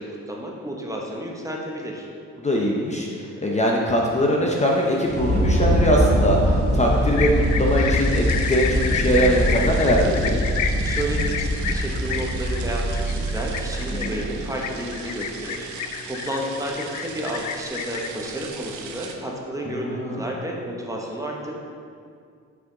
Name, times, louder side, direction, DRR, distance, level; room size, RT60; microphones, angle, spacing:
voice 1, 0.0-2.1 10.8-15.7 16.1-21.5, right 1 dB, 10° right, -1 dB, 1.0 m, -31 dB
voice 2, 2.4-3.1 3.4-10.4 13.9-14.3 19.7-20.1, equal, 25° left, -1 dB, 0.8 m, -22 dB
sound 1, 4.5-19.1, right 4 dB, 70° right, 0.7 m, -38 dB
sound 2, 5.1-14.7, equal, 35° right, 1.0 m, -23 dB
sound 3, 7.2-18.1, left 8 dB, 75° left, 0.5 m, -30 dB
6.0 x 5.8 x 3.9 m, 2.3 s
cardioid pair, 90°, 30 cm